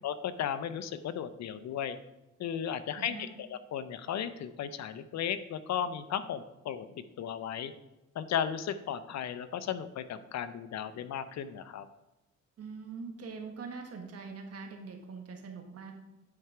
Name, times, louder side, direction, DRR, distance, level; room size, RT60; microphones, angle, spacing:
voice 1, 0.0-2.0 2.4-6.9 7.2-7.7 8.1-11.9, left 9 dB, 60° left, 13 dB, 0.6 m, -35 dB
voice 2, 2.9-3.3 12.6-15.9, right 5 dB, 55° right, 4 dB, 1.6 m, -43 dB
9.8 x 4.5 x 4.8 m, 0.98 s
cardioid pair, 90°, 30 cm